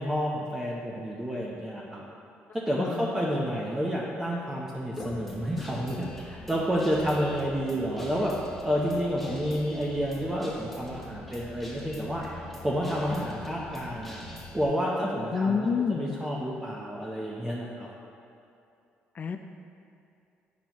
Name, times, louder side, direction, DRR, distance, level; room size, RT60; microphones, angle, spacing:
voice 1, 0.0-2.0 2.5-8.3 8.6-12.2 12.6-14.2 14.5-17.9, equal, 10° right, -4 dB, 0.7 m, -30 dB
voice 2, 2.8-3.2 15.3-16.2 19.1-19.4, left 5 dB, 40° left, 6 dB, 0.3 m, -28 dB
Guitar, 5.0-14.6, left 1 dB, 5° left, 1.1 m, -43 dB
8.6 x 6.0 x 3.0 m, 2.6 s
cardioid pair, 105°, 4 cm